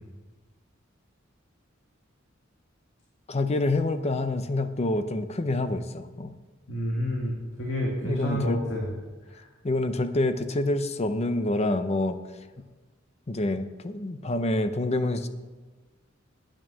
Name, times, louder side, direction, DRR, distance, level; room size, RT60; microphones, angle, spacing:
voice 1, 3.3-6.3 8.0-8.6 9.6-12.2 13.3-15.3, left 2 dB, 35° left, 10 dB, 0.6 m, -27 dB
voice 2, 6.7-8.9, equal, 80° left, -3 dB, 1.9 m, -29 dB
9.0 x 8.9 x 6.2 m, 1.3 s
head